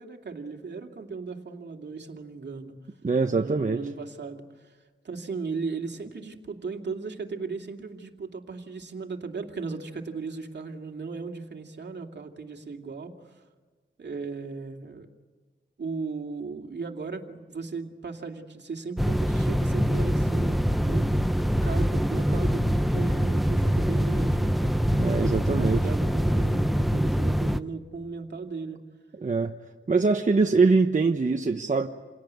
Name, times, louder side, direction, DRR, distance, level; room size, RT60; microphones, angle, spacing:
voice 1, 0.0-2.7 3.3-4.8 5.0-13.4 14.0-15.1 15.8-21.1 21.6-28.8, right 4 dB, 60° right, 3 dB, 2.5 m, -36 dB
voice 2, 3.0-3.8 24.9-25.8 29.2-29.5 29.9-31.9, right 4 dB, 40° right, 4 dB, 1.1 m, -23 dB
sound 1, 19.0-27.6, equal, ahead, 0.8 m, -24 dB
28.5 x 18.0 x 9.5 m, 1.5 s
wide cardioid pair, 75°, 20 cm